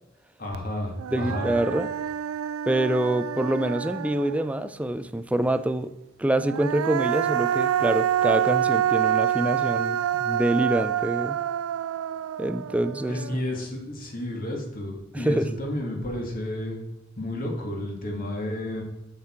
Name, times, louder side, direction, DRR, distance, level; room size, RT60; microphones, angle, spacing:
voice 1, 0.4-1.5 13.1-16.8 17.2-18.8, left 1 dB, 45° left, 1 dB, 2.0 m, -31 dB
Human voice, 0.5-0.6 1.0-4.7 6.3-13.6, right 10 dB, 90° right, 0.3 m, -27 dB
voice 2, 1.1-1.9 2.7-5.9 6.2-11.4 12.4-13.2 15.1-15.5, right 1 dB, 5° right, 12 dB, 0.3 m, -26 dB
8.6 x 6.8 x 4.4 m, 0.96 s
head